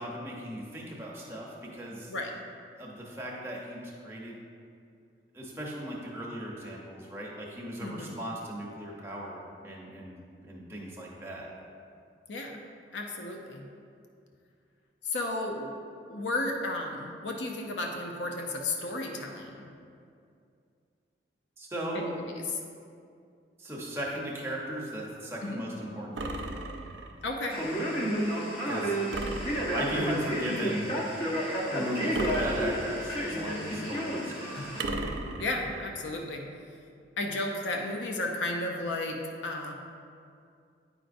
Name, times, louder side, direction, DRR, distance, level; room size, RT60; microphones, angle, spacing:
voice 1, 0.0-2.1 2.8-4.4 5.3-10.2 10.4-11.5 21.6-22.1 23.6-26.7 28.6-29.0 29.7-30.9 31.7-34.6, right 1 dB, 15° right, -3 dB, 0.8 m, -37 dB
voice 2, 7.8-8.2 12.3-12.5 12.9-13.7 15.0-15.7 16.1-19.7 21.9-22.2 22.5-22.6 25.4-25.6 27.2-27.6 33.7-33.9 35.4-36.4 37.2-39.7, left 2 dB, 85° left, 1 dB, 0.6 m, -33 dB
sound 1, 26.2-27.2 29.1-30.2 32.1-33.3 34.8-35.9, right 2 dB, 90° right, 0.5 m, -36 dB
Male speech man speaking, 27.5-34.8, equal, 30° left, 0.9 m, -31 dB
9.0 x 5.0 x 2.6 m, 2.4 s
head